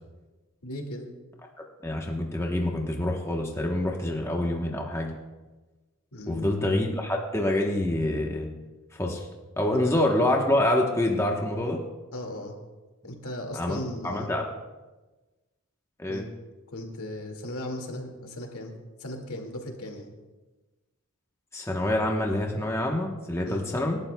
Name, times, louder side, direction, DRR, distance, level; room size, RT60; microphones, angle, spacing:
voice 1, 0.6-1.1 6.1-6.6 9.9-10.0 12.1-12.5 13.0-14.4 16.1-16.3 16.7-18.7 19.0-20.1 23.4-23.7, left 1 dB, 75° left, 2 dB, 2.1 m, -37 dB
voice 2, 1.8-5.1 6.3-8.5 8.9-9.3 9.6-11.8 13.5-14.4 16.0-16.2 21.5-24.0, left 1 dB, 10° left, 0 dB, 1.0 m, -26 dB
26.5 x 12.0 x 2.3 m, 1.2 s
head